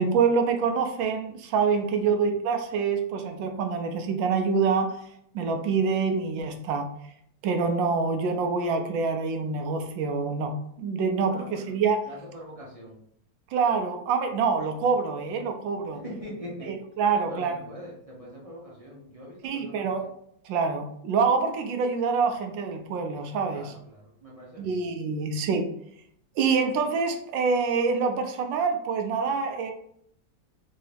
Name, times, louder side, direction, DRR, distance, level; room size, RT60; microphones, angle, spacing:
voice 1, 0.0-5.0 5.3-6.9 7.4-12.0 13.5-16.0 16.7-17.5 19.4-20.0 20.4-23.7 24.6-25.7 26.4-29.7, right 5 dB, 80° right, 5 dB, 1.3 m, -26 dB
voice 2, 2.0-2.3 11.3-11.7 12.0-13.0 15.9-16.7 17.1-20.1 23.5-24.8, equal, 35° right, -5 dB, 0.5 m, -43 dB
3.8 x 2.7 x 3.3 m, 0.69 s
omnidirectional pair, 2.1 m